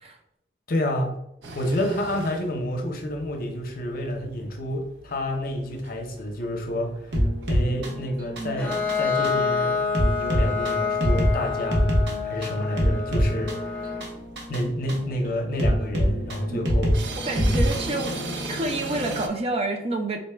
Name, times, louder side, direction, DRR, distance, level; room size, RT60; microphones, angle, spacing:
voice 1, 0.7-1.2 1.5-9.8 10.2-11.9 12.2-13.9 14.5-17.0, left 1 dB, 55° left, 3 dB, 0.6 m, -29 dB
sound 1, 1.4-19.3, right 2 dB, 90° right, 0.5 m, -41 dB
sound 2, 7.1-18.3, equal, 75° right, 0.9 m, -25 dB
Bowed string instrument, 8.6-14.2, left 5 dB, 10° left, 0.7 m, -28 dB
voice 2, 17.2-18.2 18.5-20.2, right 2 dB, 35° right, 4 dB, 0.4 m, -28 dB
4.0 x 2.2 x 3.3 m, 0.82 s
head